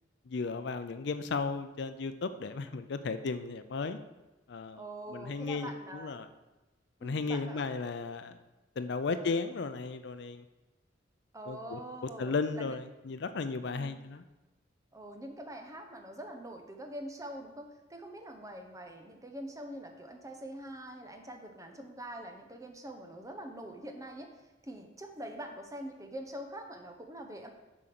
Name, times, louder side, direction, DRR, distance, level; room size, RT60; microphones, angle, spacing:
voice 1, 0.3-4.0 4.5-4.8 5.1-6.3 7.0-8.4 8.8-10.4 11.5-14.2, left 4 dB, 65° left, 10 dB, 0.5 m, -35 dB
voice 2, 4.7-6.2 7.0-7.9 9.1-9.3 11.3-12.7 13.7-14.0 14.9-24.3 24.6-27.5, right 1 dB, 20° right, 4 dB, 0.8 m, -44 dB
7.6 x 5.1 x 6.0 m, 1.1 s
head